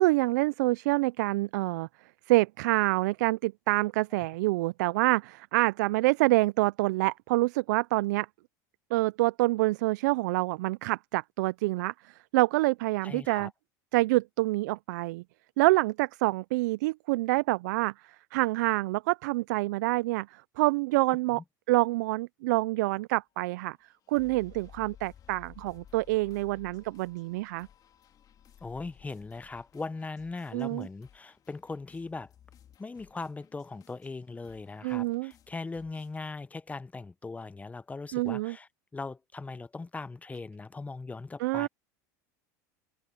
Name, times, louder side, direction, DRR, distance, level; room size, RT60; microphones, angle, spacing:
voice 1, 0.0-1.9 2.3-8.3 8.9-13.5 13.9-15.2 15.6-21.4 21.7-23.8 24.1-27.7 30.5-30.9 34.8-35.3 38.1-38.5 41.4-41.7, right 21 dB, 75° right, 0.5 m, -27 dB
voice 2, 13.0-13.5 21.3-21.4 28.6-32.3 32.8-41.7, left 3 dB, 15° left, 1.1 m, -39 dB
sound 1, 23.3-36.2, left 9 dB, 40° left, 3.5 m, -57 dB
open air
hypercardioid pair, 90°, 10 cm